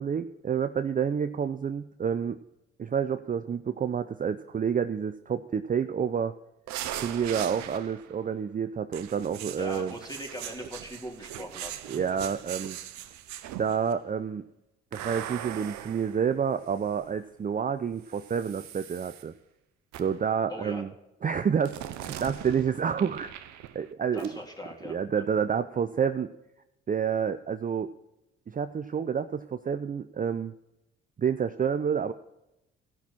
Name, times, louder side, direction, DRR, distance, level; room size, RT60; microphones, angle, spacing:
voice 1, 0.0-2.4 2.8-6.3 7.0-9.9 11.9-12.8 13.6-14.4 14.9-19.3 20.0-20.9 21.2-23.3 23.7-24.3 24.8-26.3 26.9-27.9 28.5-30.5 31.2-32.1, right 7 dB, 30° right, 10 dB, 0.5 m, -29 dB
sound 1, 6.7-8.2 8.9-13.9 14.9-17.1 18.0-19.2 19.9-20.3 21.7-23.9 24.2-24.3, right 12 dB, 75° right, 0.8 m, -40 dB
voice 2, 9.5-11.7 20.5-20.8 24.1-25.2, equal, 15° left, 0 dB, 3.5 m, -40 dB
15.5 x 6.1 x 5.8 m, 0.90 s
hypercardioid pair, 55°, 29 cm